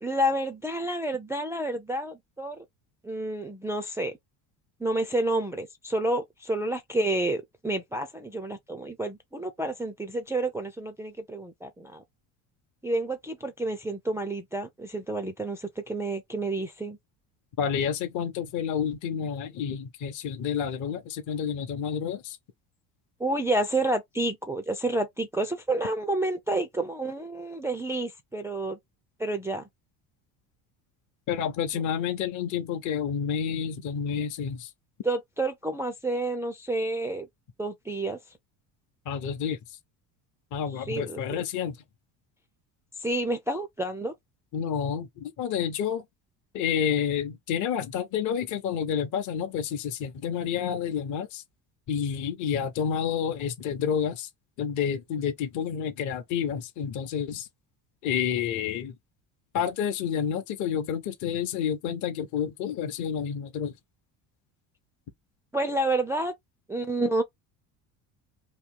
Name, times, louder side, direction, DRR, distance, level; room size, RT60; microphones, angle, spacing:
voice 1, 0.0-2.6 3.0-4.2 4.8-12.0 12.8-17.0 23.2-28.8 29.2-29.6 31.7-31.8 35.0-37.3 37.6-38.2 40.7-41.4 43.0-44.1 65.5-66.3 66.7-67.2, right 1 dB, 10° right, 0.3 m, -29 dB
voice 2, 17.6-22.4 31.3-34.7 39.1-39.6 40.5-41.8 44.5-46.0 46.5-51.4 51.9-54.3 54.6-57.5 58.0-58.9 59.5-63.7, left 8 dB, 45° left, 0.8 m, -29 dB
3.0 x 2.7 x 3.4 m
cardioid pair, 130°, 41 cm